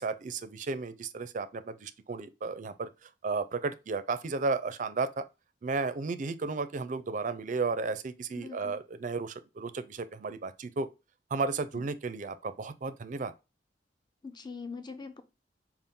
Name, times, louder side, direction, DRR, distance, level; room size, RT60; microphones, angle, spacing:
voice 1, 0.0-5.2 5.6-10.9 11.3-13.3, right 4 dB, 45° right, 0.4 m, -33 dB
voice 2, 8.4-8.8 11.7-11.8 14.2-15.2, left 4 dB, 25° left, 0.5 m, -42 dB
5.3 x 2.5 x 3.6 m
head